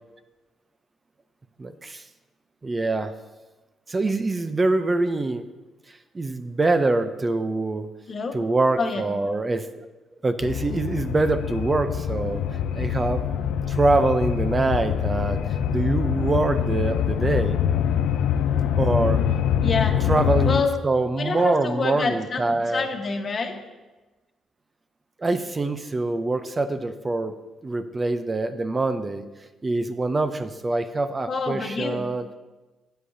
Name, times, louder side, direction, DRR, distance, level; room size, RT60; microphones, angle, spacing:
voice 1, 1.6-2.0 2.6-3.1 3.9-5.4 6.1-7.9 8.3-9.9 10.2-12.4 12.7-13.2 13.7-15.4 15.7-17.6 18.8-19.2 20.1-22.9 25.2-27.3 27.6-29.2 29.6-32.3, right 2 dB, 25° right, 10 dB, 0.5 m, -24 dB
sound 1, 10.4-20.6, left 9 dB, 80° left, 0.4 m, -24 dB
voice 2, 19.6-20.0 20.4-20.7 21.2-23.5 31.3-32.1, left 4 dB, 45° left, 4 dB, 1.2 m, -27 dB
12.5 x 8.5 x 2.7 m, 1.1 s
cardioid pair, 90°, 0 cm